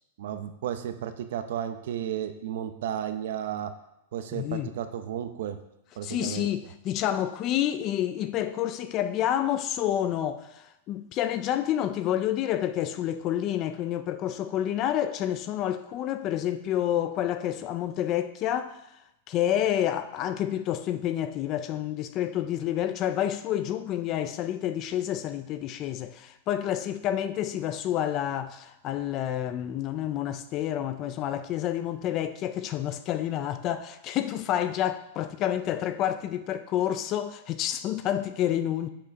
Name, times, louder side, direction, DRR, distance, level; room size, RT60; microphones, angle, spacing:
voice 1, 0.2-3.7 4.1-5.6 6.0-6.5, right 10 dB, 55° right, 0.7 m, -33 dB
voice 2, 4.3-4.7 6.0-18.8 19.3-38.9, left 11 dB, 25° left, 0.3 m, -29 dB
6.7 x 5.8 x 5.2 m
supercardioid pair, 175°, 0 cm